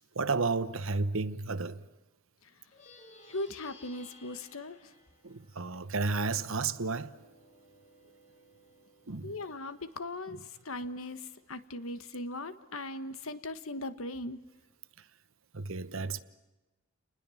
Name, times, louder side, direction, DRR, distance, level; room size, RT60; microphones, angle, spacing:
voice 1, 0.1-1.9 5.2-7.2 9.1-9.4 15.0-15.1 15.5-16.2, right 3 dB, 65° right, 1.1 m, -32 dB
Plucked string instrument, 2.6-12.3, left 1 dB, 35° left, 3.8 m, -59 dB
voice 2, 3.3-4.9 9.2-14.4, left 2 dB, 70° left, 1.5 m, -39 dB
29.5 x 20.5 x 7.2 m
head